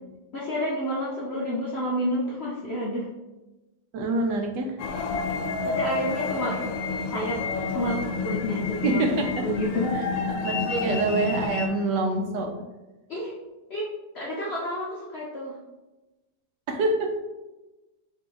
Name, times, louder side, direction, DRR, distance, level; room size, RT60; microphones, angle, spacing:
voice 1, 0.3-3.1 5.3-6.6 7.1-7.4 7.7-9.9 13.1-13.3 13.7-13.8 14.1-15.6, equal, 60° left, -6 dB, 0.6 m, -30 dB
voice 2, 3.9-4.8 8.7-9.5 9.9-12.5 16.7-17.2, right 2 dB, 75° right, 4 dB, 1.2 m, -26 dB
sound 1, 4.8-11.7, left 4 dB, 90° left, 1.3 m, -29 dB
4.1 x 2.8 x 3.8 m, 1.1 s
omnidirectional pair, 1.9 m